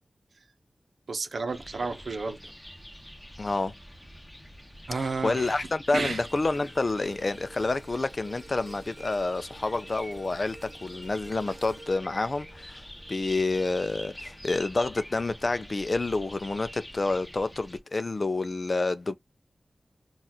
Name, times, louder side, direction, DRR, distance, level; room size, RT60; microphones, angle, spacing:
voice 1, 1.1-2.4 4.9-5.7 5.9-6.2 11.5-11.6, right 3 dB, 80° right, 0.7 m, -32 dB
sound 1, 1.5-17.8, equal, 10° left, 1.0 m, -46 dB
voice 2, 3.4-3.7 5.0-19.2, left 3 dB, 50° left, 0.4 m, -29 dB
sound 2, 5.9-14.2 14.6-14.9, right 2 dB, 40° right, 1.5 m, -52 dB
4.0 x 2.4 x 2.8 m
wide cardioid pair, 75°, 0 cm